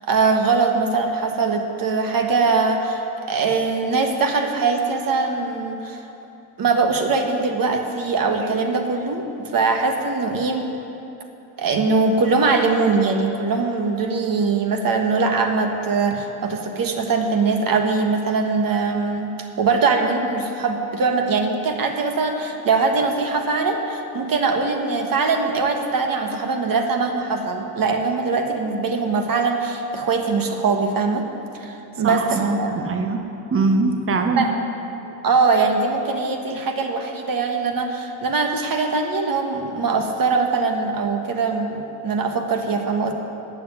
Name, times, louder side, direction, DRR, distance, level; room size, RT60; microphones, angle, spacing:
voice 1, 0.1-6.0 6.6-9.3 9.5-10.7 11.6-31.3 31.5-32.7 34.4-34.5 35.0-43.1, right 4 dB, 40° right, 4 dB, 1.5 m, -22 dB
voice 2, 32.0-33.2 33.5-34.5 36.5-36.6, right 3 dB, 25° right, 5 dB, 1.0 m, -22 dB
11.5 x 8.0 x 9.8 m, 2.9 s
cardioid pair, 105°, 50 cm